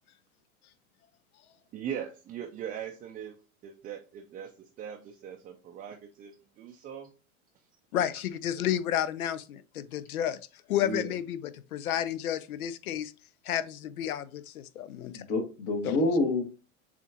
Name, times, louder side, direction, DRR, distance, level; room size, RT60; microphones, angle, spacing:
voice 1, 1.7-3.3 3.6-7.1 8.5-8.6, right 9 dB, 20° right, 0.4 m, -40 dB
voice 2, 7.9-10.4 10.7-13.1 13.4-15.2 15.8-16.0, left 11 dB, 85° left, 0.6 m, -31 dB
voice 3, 10.7-11.1 15.1-16.4, left 2 dB, 55° left, 1.5 m, -28 dB
7.0 x 2.5 x 2.8 m
hypercardioid pair, 100°, 43 cm